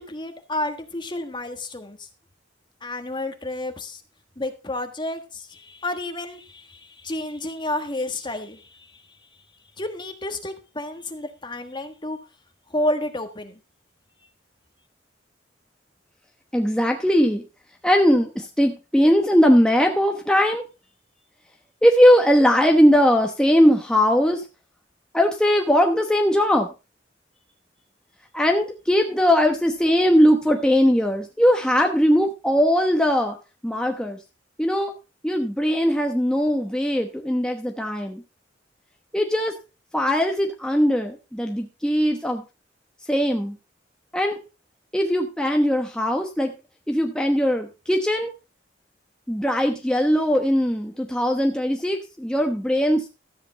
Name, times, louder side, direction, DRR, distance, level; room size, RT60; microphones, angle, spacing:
voice 1, 0.0-2.1 2.8-4.0 4.4-9.2 9.8-12.2 12.7-13.6, left 1 dB, 25° left, 7 dB, 1.4 m, -30 dB
voice 2, 16.5-17.4 17.8-20.6 21.8-24.4 25.1-26.7 28.3-33.4 33.6-34.2 34.6-34.9 35.2-38.2 39.1-39.5 39.9-42.4 43.1-43.6 44.1-44.4 44.9-46.5 46.9-48.3 49.3-53.1, equal, 5° left, 3 dB, 1.0 m, -20 dB
13.0 x 7.9 x 4.1 m, 0.30 s
head